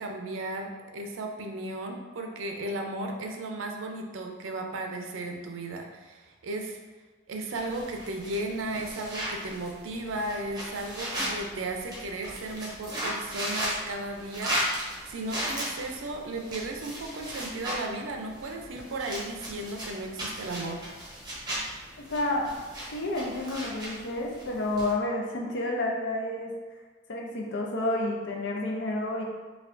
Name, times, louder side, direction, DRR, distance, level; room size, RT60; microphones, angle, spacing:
voice 1, 0.0-6.8 7.3-14.6 15.1-20.8, right 2 dB, 80° right, 3 dB, 0.5 m, -35 dB
sound 1, 7.5-24.9, equal, 20° right, 0.9 m, -37 dB
voice 2, 22.0-22.5 22.9-26.5 27.1-29.2, left 2 dB, 65° left, 0 dB, 0.5 m, -30 dB
4.4 x 2.3 x 2.5 m, 1.3 s
head